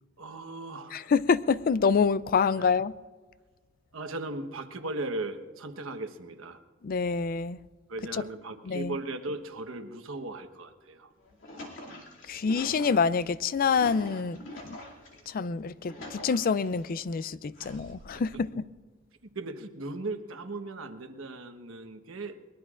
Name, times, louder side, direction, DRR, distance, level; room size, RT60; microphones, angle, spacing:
voice 1, 0.2-1.1 2.6-2.7 3.9-6.6 7.9-11.1 17.6-17.9 19.3-22.4, right 2 dB, 90° right, 1.2 m, -37 dB
voice 2, 0.9-2.9 6.8-7.6 8.1-8.2 8.6-9.0 12.3-14.8 15.3-18.6, left 5 dB, 45° left, 0.4 m, -27 dB
sound 1, 11.1-15.2 15.7-16.9 17.6-18.3, left 1 dB, 70° left, 2.5 m, -45 dB
24.0 x 21.0 x 2.5 m
head